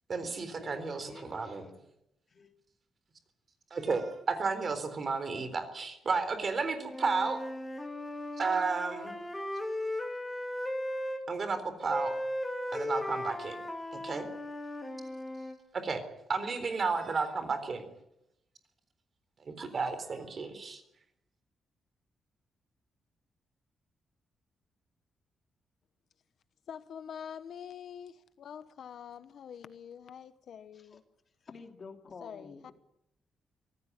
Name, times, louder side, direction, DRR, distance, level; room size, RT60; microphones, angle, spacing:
voice 1, 0.1-1.7 3.7-7.4 8.4-9.2 11.3-12.2 12.7-13.6 13.9-14.3 15.7-16.0 16.3-17.9 19.4-20.8, right 4 dB, 35° right, 3.8 m, -32 dB
voice 2, 0.6-1.8 2.3-2.5 30.7-31.0 31.4-32.7, left 4 dB, 35° left, 2.8 m, -49 dB
Wind instrument woodwind instrument, 6.8-11.2 11.9-15.6, left 1 dB, 10° left, 2.8 m, -37 dB
voice 3, 26.7-31.0 32.2-32.7, left 8 dB, 60° left, 1.1 m, -45 dB
25.0 x 17.5 x 9.8 m
wide cardioid pair, 165°, 0 cm